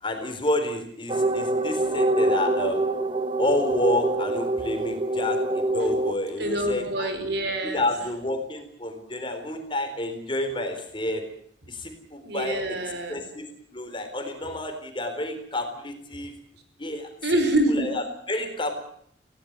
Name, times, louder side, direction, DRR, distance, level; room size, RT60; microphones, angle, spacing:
voice 1, 0.0-2.8 3.4-7.1 7.6-11.2 11.7-12.8 13.1-13.5 13.7-16.3 16.8-17.1 17.7-18.7, left 1 dB, 25° left, 6 dB, 3.9 m, -29 dB
sound 1, 1.1-6.1, right 2 dB, 25° right, 1.2 m, -25 dB
voice 2, 6.4-7.8 12.2-13.2 17.2-17.9, right 1 dB, 65° right, 7 dB, 5.2 m, -26 dB
21.0 x 17.5 x 9.4 m, 0.67 s
head